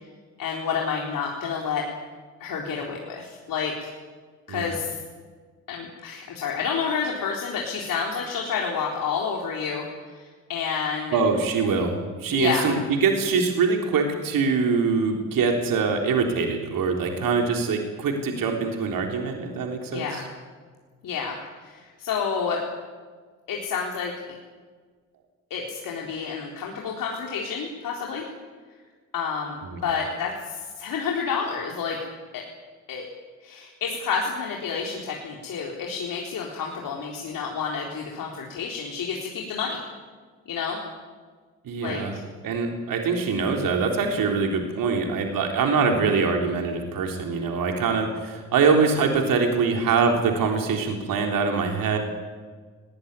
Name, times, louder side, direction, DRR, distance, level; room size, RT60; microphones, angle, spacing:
voice 1, 0.4-1.8 2.4-3.9 4.5-5.0 5.7-11.2 12.3-12.7 19.9-20.2 21.0-21.3 21.6-22.6 23.5-24.1 25.5-28.3 29.1-29.6 29.8-32.0 32.3-32.4 32.9-33.1 33.4-39.8 40.5-40.8 41.8-42.2, left 6 dB, 60° left, -1 dB, 3.9 m, -29 dB
voice 2, 11.1-20.3 29.7-29.8 41.6-42.2 42.4-52.0, right 5 dB, 60° right, 3 dB, 3.8 m, -24 dB
19.5 x 19.5 x 9.7 m, 1.5 s
hypercardioid pair, 45°, 38 cm